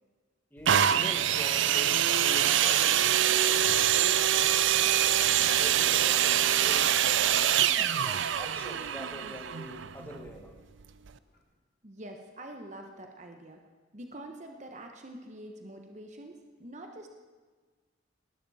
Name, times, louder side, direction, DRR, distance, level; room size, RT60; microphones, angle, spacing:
voice 1, 0.5-5.2 5.6-10.5, equal, 10° left, 1 dB, 1.8 m, -45 dB
sound 1, 0.7-10.4 11.1-11.2, right 10 dB, 65° right, 0.5 m, -25 dB
sound 2, 3.2-11.4, equal, 90° left, 3.7 m, -53 dB
Meow, 5.2-5.9 6.7-6.8 7.3-7.4 11.3-11.4, left 2 dB, 45° left, 1.6 m, -45 dB
voice 2, 11.8-13.6 13.9-17.1, right 1 dB, 35° right, 3 dB, 1.1 m, -45 dB
19.0 x 12.0 x 4.2 m, 1.4 s
head